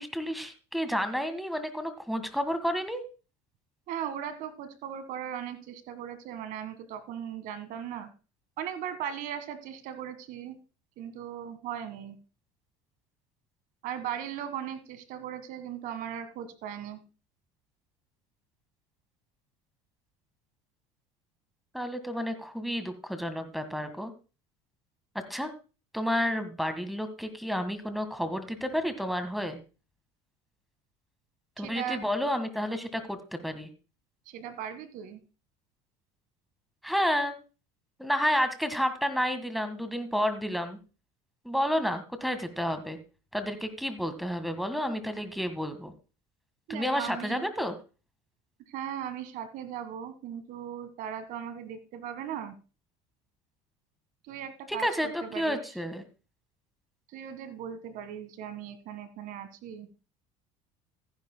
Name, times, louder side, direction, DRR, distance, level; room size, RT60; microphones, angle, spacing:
voice 1, 0.0-3.0 21.7-24.1 25.3-25.5 25.9-29.6 31.6-33.7 36.8-37.3 38.0-40.8 41.4-43.0 43.3-45.9 46.7-47.7 54.7-56.0, equal, ahead, 9 dB, 1.6 m, -30 dB
voice 2, 3.9-8.1 8.6-10.6 11.0-12.2 13.8-17.0 31.6-32.0 34.3-35.2 46.7-47.5 48.7-52.5 54.3-55.6 57.1-59.9, right 9 dB, 65° right, 11 dB, 1.6 m, -38 dB
14.5 x 10.5 x 2.2 m, 0.33 s
supercardioid pair, 90°, 15 cm